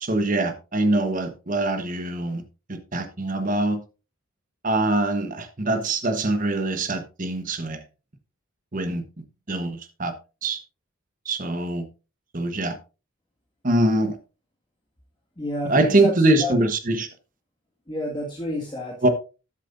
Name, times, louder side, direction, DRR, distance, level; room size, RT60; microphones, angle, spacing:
voice 1, 0.0-2.4 2.7-3.8 4.6-7.8 8.7-10.1 10.4-10.6 11.2-11.9 12.3-12.7 13.6-14.2 15.7-17.1 19.0-19.1, right 2 dB, 40° right, 1.1 m, -23 dB
voice 2, 15.4-16.6 17.9-19.1, left 1 dB, 20° left, 1.9 m, -30 dB
13.0 x 7.5 x 2.6 m
head